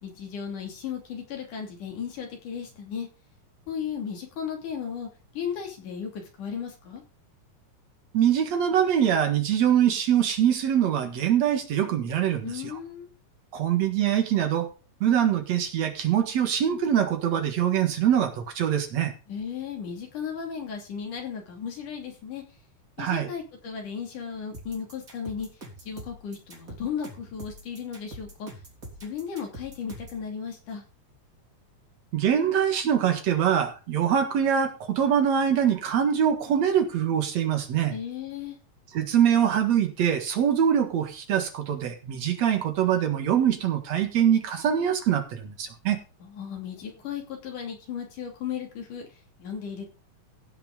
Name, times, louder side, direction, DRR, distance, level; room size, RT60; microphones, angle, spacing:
voice 1, 0.0-3.1 3.7-5.1 5.3-7.0 12.4-13.1 19.3-22.4 23.0-25.5 25.9-28.5 29.0-30.8 37.9-38.6 46.2-49.1 49.4-49.8, left 7 dB, 90° left, 2 dB, 4.4 m, -35 dB
voice 2, 8.1-12.8 13.5-14.7 15.0-19.1 23.0-23.3 32.1-37.9 38.9-46.0, right 9 dB, 60° right, 5 dB, 2.8 m, -23 dB
sound 1, 24.5-30.2, right 1 dB, 25° right, 3.7 m, -44 dB
16.0 x 6.0 x 5.2 m, 0.33 s
omnidirectional pair, 3.5 m